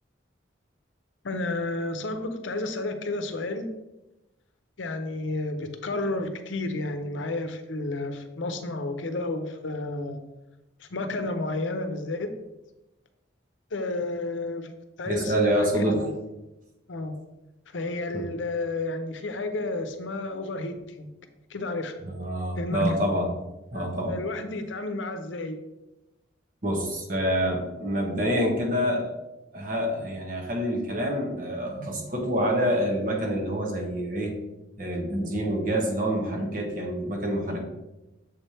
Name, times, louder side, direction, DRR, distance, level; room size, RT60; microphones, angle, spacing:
voice 1, 1.2-3.7 4.8-10.2 10.8-12.3 13.7-16.3 16.9-17.2 17.7-21.1 21.5-22.0 22.6-23.0 23.7-25.6, left 2 dB, 80° left, 8 dB, 0.7 m, -31 dB
voice 2, 15.0-16.0 22.0-23.3 23.7-24.2 26.6-29.1 29.5-34.3 34.8-37.6, equal, 45° right, 0 dB, 1.3 m, -27 dB
7.0 x 3.3 x 4.3 m, 0.97 s
head